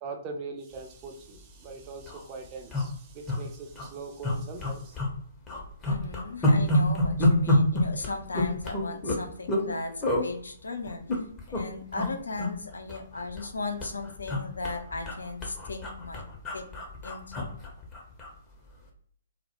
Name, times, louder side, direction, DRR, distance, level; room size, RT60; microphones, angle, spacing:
voice 1, 0.0-5.0, right 4 dB, 30° right, 3 dB, 0.4 m, -41 dB
sound 1, 1.2-1.4 1.7-1.8 2.0-2.2 2.7-3.4 3.7-3.9 4.2-5.2 5.5-9.7 10.0-10.3 10.9-11.6 11.9-12.1 12.4-13.5 13.8-18.4 18.7-18.9, left 1 dB, 15° left, 0.5 m, -27 dB
voice 2, 5.8-11.0 11.5-16.2 16.5-16.6 17.0-17.2, left 3 dB, 75° left, 5 dB, 0.4 m, -36 dB
2.1 x 2.1 x 2.8 m, 0.62 s
figure-of-eight pair, 125°, 0 cm